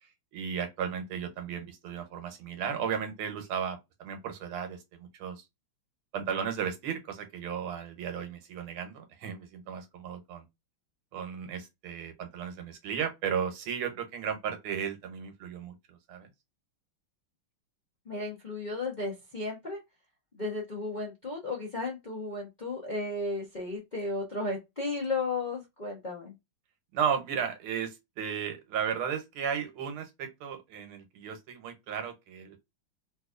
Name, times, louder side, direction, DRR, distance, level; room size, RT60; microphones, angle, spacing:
voice 1, 0.0-5.4 6.1-10.5 11.1-16.3 26.9-32.6, right 7 dB, 90° right, 1.8 m, -35 dB
voice 2, 18.1-19.8 20.3-26.3, left 2 dB, 50° left, 0.5 m, -34 dB
3.9 x 2.7 x 2.4 m
omnidirectional pair, 2.2 m